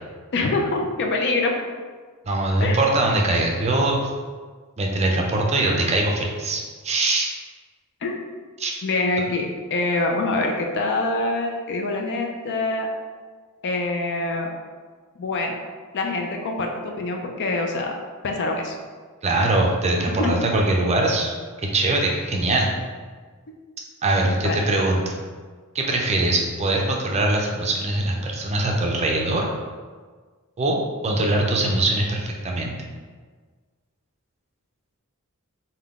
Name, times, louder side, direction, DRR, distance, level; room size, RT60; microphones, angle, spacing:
voice 1, 0.3-1.6 2.6-2.8 8.0-8.2 8.8-12.9 13.6-14.5 15.2-15.6 15.9-17.9 18.2-18.7 20.2-20.3 24.2-24.6, left 2 dB, 55° left, 2 dB, 0.4 m, -25 dB
voice 2, 2.3-4.1 4.8-7.3 8.6-8.7 19.2-21.3 21.7-22.7 24.0-25.2 25.7-29.5 30.6-30.8 31.0-32.8, right 2 dB, 30° right, 0 dB, 0.5 m, -22 dB
3.6 x 2.2 x 3.5 m, 1.5 s
head